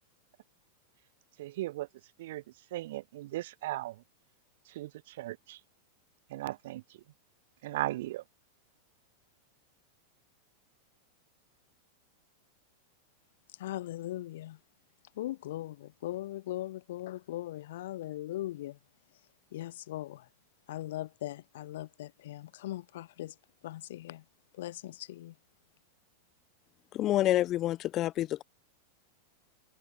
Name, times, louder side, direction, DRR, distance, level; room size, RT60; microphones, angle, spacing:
voice 1, 1.4-1.9 2.2-2.4 2.7-4.0 4.7-5.6 6.3-7.0 7.6-8.2, right 16 dB, 55° right, 5.0 m, -37 dB
voice 2, 13.6-14.6 15.2-18.8 19.5-20.2 20.7-23.3 23.6-24.2 24.6-25.3, left 14 dB, 55° left, 1.7 m, -39 dB
voice 3, 26.9-28.4, left 14 dB, 35° left, 1.6 m, -28 dB
figure-of-eight pair, 90°, 0 cm